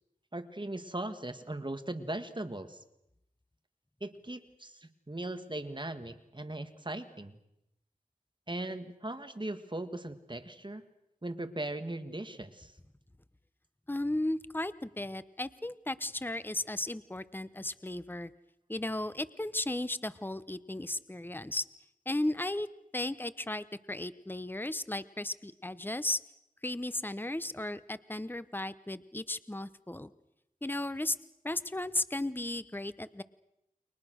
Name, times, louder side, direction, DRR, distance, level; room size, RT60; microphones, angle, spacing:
voice 1, 0.3-2.8 4.0-7.4 8.5-10.8 11.2-12.7, right 1 dB, 35° right, 8 dB, 2.0 m, -39 dB
voice 2, 13.9-18.3 18.7-21.6 22.1-22.7 22.9-26.2 26.6-30.1 30.6-31.2 31.4-33.2, left 1 dB, 15° left, 14 dB, 0.9 m, -35 dB
30.0 x 24.0 x 6.4 m, 0.82 s
wide cardioid pair, 55°, 15 cm